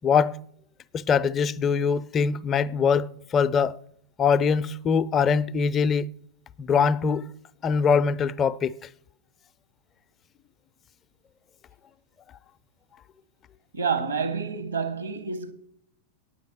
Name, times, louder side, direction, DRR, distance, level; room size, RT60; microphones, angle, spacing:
voice 1, 0.0-0.4 0.9-3.8 4.2-6.1 6.6-7.3 7.6-8.7, left 6 dB, 25° left, 0.4 m, -23 dB
voice 2, 13.7-15.5, right 5 dB, 75° right, 1.5 m, -28 dB
9.4 x 8.7 x 6.6 m
figure-of-eight pair, 90°, 0 cm